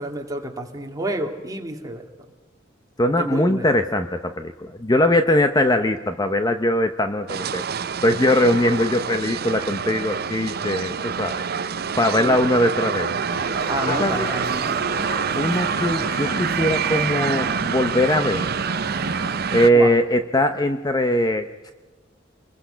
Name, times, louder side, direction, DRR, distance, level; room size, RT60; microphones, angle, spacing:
voice 1, 0.0-2.0 3.2-3.7 12.2-12.4 13.7-14.8 19.7-19.9, right 1 dB, 20° right, 2 dB, 2.3 m, -29 dB
voice 2, 3.0-7.6 8.0-11.4 12.0-13.2 13.9-14.3 15.4-18.5 19.5-21.7, left 1 dB, 20° left, 8 dB, 0.7 m, -21 dB
sound 1, 7.3-19.7, right 6 dB, 55° right, 0.6 m, -26 dB
sound 2, 8.1-18.1, left 24 dB, 75° left, 8.0 m, -48 dB
sound 3, 13.3-19.4, left 1 dB, 45° left, 8.0 m, -34 dB
27.0 x 21.0 x 5.7 m, 1.3 s
head